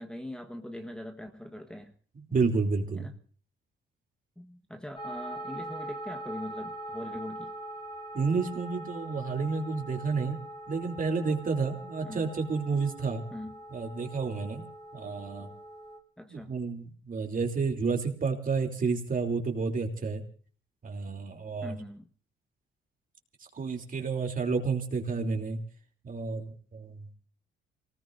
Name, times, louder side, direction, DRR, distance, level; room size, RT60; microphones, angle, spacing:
voice 1, 0.0-1.9 2.3-2.4 2.9-3.1 4.4-7.5 8.7-8.8 12.0-12.3 13.3-13.6 16.2-16.6 21.6-22.1, left 1 dB, 5° left, 1.3 m, -42 dB
voice 2, 2.1-3.1 8.1-10.4 10.7-13.2 13.7-15.5 16.3-20.2 20.8-21.8 23.5-25.6 26.0-27.1, right 4 dB, 45° right, 3.1 m, -30 dB
singing bowl, 5.0-16.0, right 1 dB, 25° left, 2.6 m, -42 dB
28.0 x 19.0 x 2.6 m
cardioid pair, 90°, 20 cm